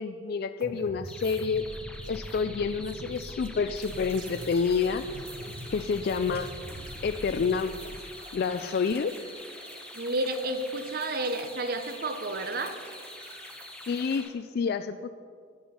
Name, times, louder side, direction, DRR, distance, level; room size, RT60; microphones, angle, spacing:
voice 1, 0.0-1.7 2.1-5.1 5.7-6.5 7.0-7.8 8.3-9.2 13.9-15.1, left 5 dB, 50° left, 10 dB, 0.3 m, -28 dB
sound 1, 0.6-8.0, right 1 dB, 70° right, 1.0 m, -42 dB
sound 2, 1.1-14.3, left 1 dB, 5° left, 0.8 m, -46 dB
sound 3, 3.7-14.2, right 1 dB, 30° right, 3.0 m, -50 dB
voice 2, 9.9-12.8, right 2 dB, 50° right, 8 dB, 0.8 m, -31 dB
11.0 x 11.0 x 4.4 m, 2.1 s
head